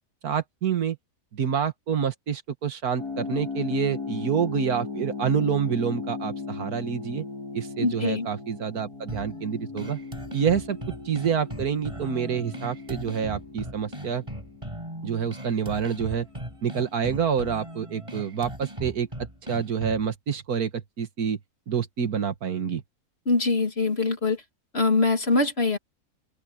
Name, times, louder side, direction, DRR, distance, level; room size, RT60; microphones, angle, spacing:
voice 1, 0.2-1.0 1.3-7.3 7.5-10.0 10.3-10.8 11.1-14.2 15.0-16.3 16.6-19.1 19.5-21.4 21.7-22.8, right 7 dB, 75° right, 1.9 m, -27 dB
sound 1, 3.0-17.7, left 4 dB, 90° left, 7.1 m, -38 dB
voice 2, 7.8-8.3 23.3-24.4 24.7-25.8, left 3 dB, 40° left, 2.8 m, -23 dB
sound 2, 9.1-20.1, right 1 dB, 20° right, 5.5 m, -38 dB
open air
omnidirectional pair, 1.6 m